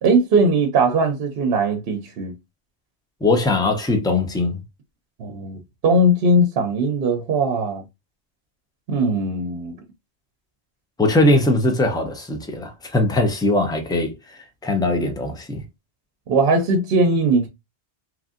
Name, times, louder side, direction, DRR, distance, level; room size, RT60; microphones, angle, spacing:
voice 1, 0.0-2.3 5.2-7.8 8.9-9.7 16.3-17.5, right 2 dB, 65° right, 0.8 m, -19 dB
voice 2, 3.2-4.6 11.0-15.6, left 2 dB, 5° left, 0.4 m, -20 dB
2.9 x 2.5 x 2.4 m
omnidirectional pair, 1.1 m